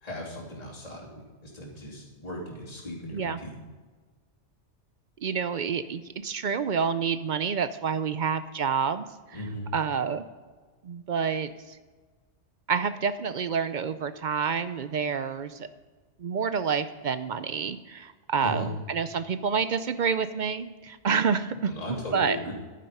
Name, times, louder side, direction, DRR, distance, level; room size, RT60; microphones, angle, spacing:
voice 1, 0.0-3.6 9.3-9.7 18.4-18.7 21.7-22.5, equal, 30° left, -6 dB, 3.1 m, -37 dB
voice 2, 5.2-10.3 10.8-11.8 12.7-15.7 16.2-22.4, right 6 dB, 55° right, 13 dB, 0.6 m, -28 dB
11.5 x 9.4 x 5.5 m, 1.4 s
omnidirectional pair, 1.2 m